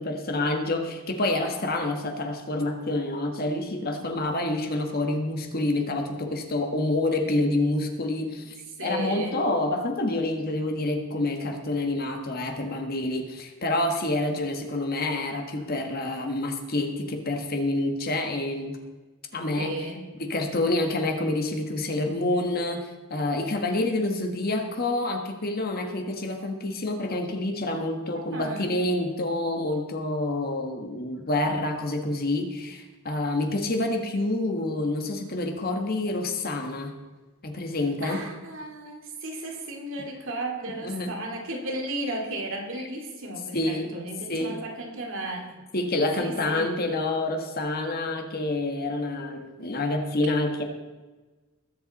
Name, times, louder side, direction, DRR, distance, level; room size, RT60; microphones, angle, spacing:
voice 1, 0.0-8.5 8.8-18.8 19.3-19.8 20.1-36.9 37.4-38.3 40.8-41.2 43.5-44.0 44.3-44.6 45.7-50.6, left 2 dB, 45° left, 4 dB, 1.5 m, -28 dB
voice 2, 8.8-9.4 19.5-20.1 28.3-28.8 38.0-45.5 46.2-46.8, right 1 dB, 60° right, 2 dB, 2.4 m, -34 dB
20.5 x 8.1 x 4.2 m, 1.3 s
head